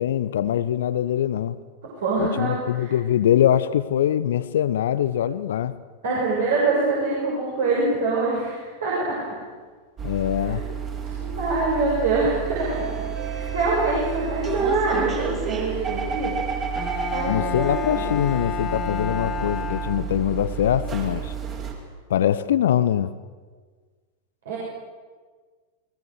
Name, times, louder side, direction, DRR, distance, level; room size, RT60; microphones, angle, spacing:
voice 1, 0.0-1.6 2.2-5.8 10.0-10.6 17.3-21.3 22.1-23.1, left 10 dB, 60° left, 15 dB, 0.9 m, -23 dB
voice 2, 2.0-2.9 6.0-9.2 10.5-10.6 11.0-13.0 13.2-16.3 17.1-18.1 24.5-24.6, right 3 dB, 60° right, -6 dB, 7.2 m, -25 dB
sound 1, 10.0-21.7, right 7 dB, 30° right, 5.1 m, -30 dB
Bowed string instrument, 16.8-20.5, left 9 dB, 25° left, 1.6 m, -31 dB
29.5 x 21.5 x 6.6 m, 1.5 s
figure-of-eight pair, 90°, 0 cm